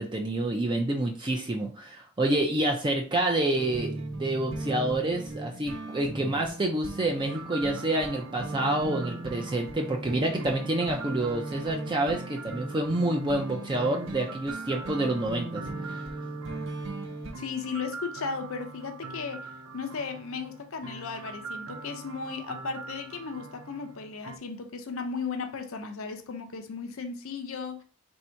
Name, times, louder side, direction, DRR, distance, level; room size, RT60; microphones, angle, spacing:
voice 1, 0.0-3.9 4.2-16.0, right 1 dB, 20° right, 0.4 m, -28 dB
sound 1, 3.5-17.3, right 2 dB, 60° right, 0.8 m, -38 dB
sound 2, 7.2-24.4, right 3 dB, 85° right, 0.6 m, -43 dB
voice 2, 17.4-19.5 19.7-27.8, left 5 dB, 60° left, 0.6 m, -35 dB
3.5 x 2.7 x 4.4 m
head